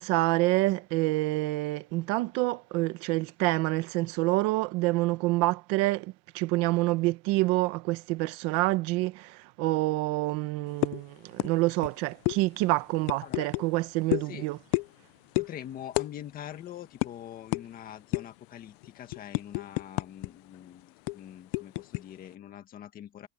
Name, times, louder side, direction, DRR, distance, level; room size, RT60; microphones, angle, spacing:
voice 1, 0.0-14.6, right 20 dB, 55° right, 1.2 m, -27 dB
sound 1, 10.8-11.0 11.4-11.5 11.8-11.9 12.3-12.4 13.1-13.7 14.1-14.3 14.7-15.0 15.3-15.5 15.9-16.1 16.4-16.5 17.0-17.1 17.5-17.7 18.1-18.4 18.8-20.3 20.5-20.7 21.1-22.0, left 26 dB, 65° left, 0.5 m, -29 dB
voice 2, 15.4-23.3, left 10 dB, 30° left, 1.9 m, -44 dB
cardioid pair, 175°, 29 cm